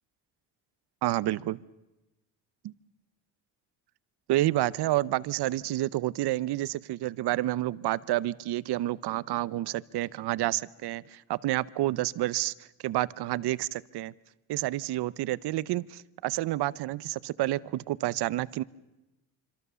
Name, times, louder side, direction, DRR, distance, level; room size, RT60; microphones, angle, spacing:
voice 1, 1.0-1.6 2.6-2.7 4.3-12.5 12.8-14.1 14.5-18.6, right 15 dB, 70° right, 19 dB, 0.8 m, -29 dB
26.0 x 26.0 x 6.9 m, 1.0 s
cardioid pair, 95°, 41 cm